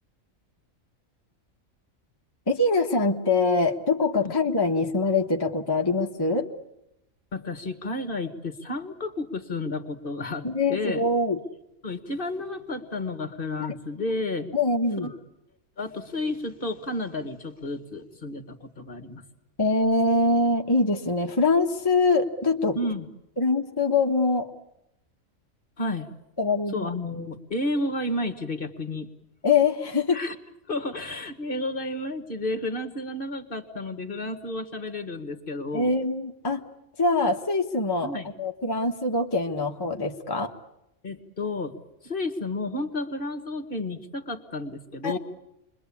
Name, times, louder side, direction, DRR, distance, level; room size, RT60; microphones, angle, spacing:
voice 1, 2.5-6.5 10.4-11.4 14.5-15.1 19.6-22.8 23.4-24.5 26.4-26.9 29.4-30.2 35.7-36.6 37.0-38.1 38.4-40.5 45.0-45.2, left 3 dB, 20° left, 1 dB, 1.2 m, -23 dB
voice 2, 7.3-11.1 11.8-14.5 15.0-15.1 15.8-19.2 22.7-23.1 25.8-26.1 26.7-29.1 30.1-30.4 30.7-35.9 38.0-38.3 41.0-41.8 42.0-45.2, left 2 dB, 40° left, 8 dB, 1.8 m, -31 dB
28.5 x 22.5 x 8.6 m, 0.86 s
omnidirectional pair, 1.4 m